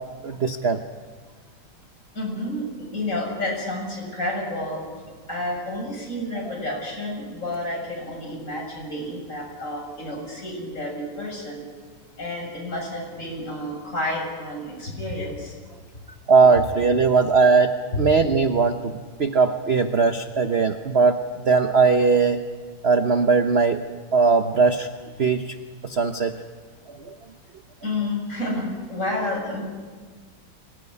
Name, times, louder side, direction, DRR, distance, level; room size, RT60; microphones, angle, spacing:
voice 1, 0.2-0.8 12.3-12.4 16.3-18.9 19.2-21.2 21.5-22.4 22.8-23.8 24.1-24.9 25.2-25.5 25.8-26.3 26.9-27.1, right 4 dB, 45° right, 7 dB, 0.8 m, -19 dB
voice 2, 2.1-4.8 5.3-11.6 12.2-15.5 27.8-29.6, left 1 dB, 35° left, 0 dB, 7.4 m, -30 dB
24.5 x 19.0 x 9.8 m, 1.5 s
omnidirectional pair, 2.3 m